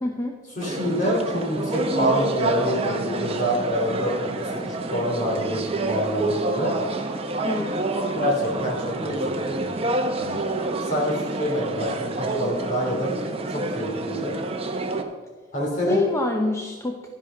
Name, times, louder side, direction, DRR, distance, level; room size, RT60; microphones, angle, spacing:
voice 1, 0.0-0.4 7.4-7.7 15.9-17.1, left 2 dB, 15° left, 2 dB, 0.6 m, -26 dB
voice 2, 0.6-4.3 4.6-6.8 8.1-9.7 10.2-10.4 10.8-13.1 13.5-14.3 15.5-16.0, equal, 40° left, -2 dB, 3.2 m, -26 dB
sound 1, 0.6-15.0, right 2 dB, 30° right, 0.8 m, -28 dB
11.5 x 10.5 x 3.8 m, 1.5 s
head